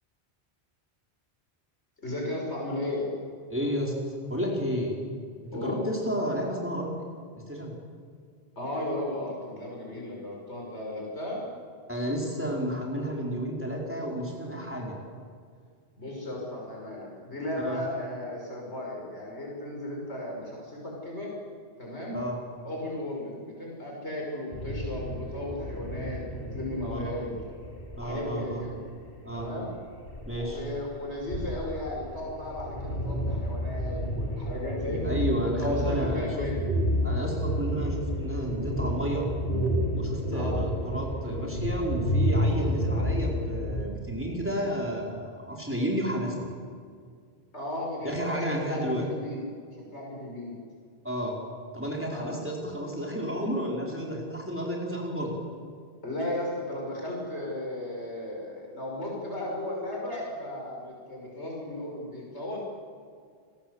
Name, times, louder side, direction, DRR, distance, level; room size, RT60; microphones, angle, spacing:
voice 1, 2.0-3.1 5.5-5.8 8.6-11.5 16.0-21.3 21.8-22.2 22.6-27.3 28.0-28.8 29.3-29.7 30.3-36.6 40.3-40.6 47.5-50.5 52.1-52.3 56.0-62.6, left 1 dB, 75° left, -2 dB, 6.4 m, -35 dB
voice 2, 3.5-3.9 4.3-5.0 5.4-6.9 7.5-7.8 11.9-15.0 17.6-17.8 22.1-22.4 26.9-27.0 28.0-28.6 29.2-29.5 30.2-30.6 35.0-36.5 37.0-39.2 39.9-46.5 48.0-49.0 51.0-51.4 51.7-55.3, equal, 10° right, -2 dB, 4.7 m, -31 dB
sound 1, 24.5-43.8, equal, 55° left, 3.7 m, -30 dB
29.5 x 21.0 x 8.1 m, 2.1 s
omnidirectional pair, 1.1 m